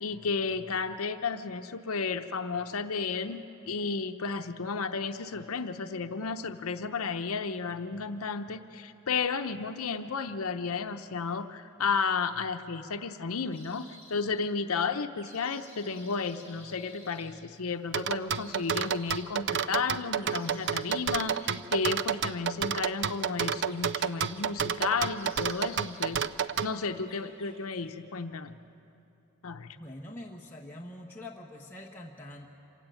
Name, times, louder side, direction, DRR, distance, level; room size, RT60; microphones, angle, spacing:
voice 1, 0.0-26.3 26.6-28.6 29.4-29.8, left 5 dB, 85° left, 8 dB, 0.8 m, -33 dB
sound 1, 13.5-14.3 15.1-17.3 18.3-19.3 20.2-21.5 23.0-24.8 25.1-26.2 26.4-27.9, left 1 dB, 10° right, 6.0 m, -53 dB
sound 2, 17.9-26.7, right 7 dB, 50° right, 0.5 m, -30 dB
voice 2, 29.8-32.5, left 1 dB, 10° left, -3 dB, 1.1 m, -44 dB
26.5 x 16.0 x 9.1 m, 2.8 s
head